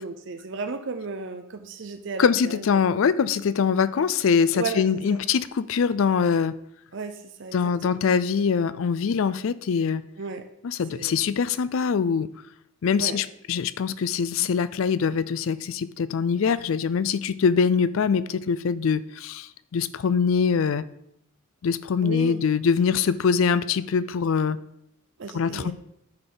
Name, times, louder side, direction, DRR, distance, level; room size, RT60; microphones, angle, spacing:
voice 1, 0.0-2.9 4.5-5.2 6.9-8.1 10.2-10.5 10.9-11.2 12.9-13.2 22.0-22.4 25.2-25.7, right 4 dB, 60° right, 7 dB, 0.6 m, -34 dB
voice 2, 2.2-6.5 7.5-10.0 10.6-12.3 12.8-20.8 21.6-24.6 25.3-25.7, left 6 dB, 70° left, 16 dB, 0.4 m, -23 dB
9.6 x 4.1 x 6.7 m, 0.76 s
head